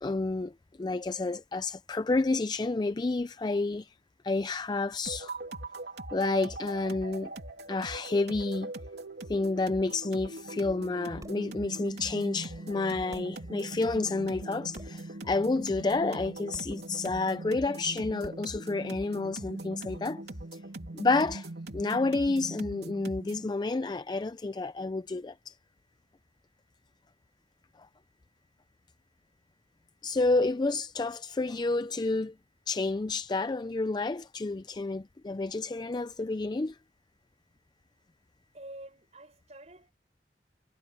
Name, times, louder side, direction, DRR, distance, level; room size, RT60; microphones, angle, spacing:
voice 1, 0.0-0.5 0.8-3.9 4.2-5.4 6.1-7.3 7.7-8.7 9.3-20.2 20.9-25.6 30.0-32.3 32.7-36.8, left 3 dB, 25° left, 0.4 m, -30 dB
sound 1, 5.1-23.5, right 2 dB, 70° right, 2.9 m, -41 dB
sound 2, 11.2-11.5 12.7-12.8 13.1-13.4 14.7-15.1 16.5-16.8 18.2-18.6, right 1 dB, 20° right, 4.0 m, -49 dB
voice 2, 38.5-39.9, right 1 dB, 40° right, 7.1 m, -48 dB
head